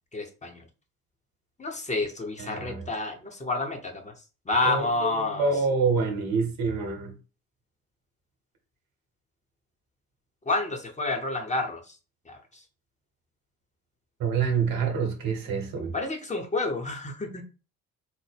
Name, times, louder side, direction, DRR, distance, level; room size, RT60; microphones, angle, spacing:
voice 1, 0.1-0.6 1.6-4.1 4.5-5.5 10.5-11.8 12.3-12.4 15.9-17.4, left 3 dB, 15° left, 1.1 m, -29 dB
voice 2, 2.4-2.9 4.6-7.1 14.2-15.9, right 5 dB, 50° right, 1.2 m, -27 dB
4.4 x 2.1 x 3.5 m
figure-of-eight pair, 50°, 44 cm